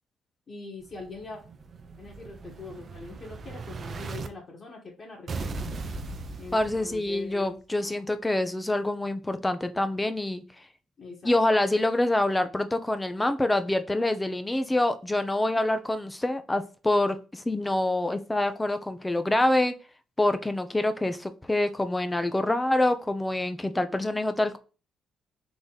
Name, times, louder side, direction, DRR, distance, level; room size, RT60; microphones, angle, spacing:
voice 1, 0.5-1.4 2.0-5.7 6.4-7.5 7.8-8.0 11.0-11.3, left 3 dB, 40° left, -1 dB, 1.8 m, -43 dB
Explosion, 0.9-4.3 5.3-7.3, right 3 dB, 45° right, 0.6 m, -38 dB
voice 2, 6.5-10.4 11.2-19.7 20.2-24.6, left 1 dB, 15° left, 10 dB, 0.7 m, -26 dB
4.0 x 3.3 x 4.0 m, 0.34 s
cardioid pair, 90°, 0 cm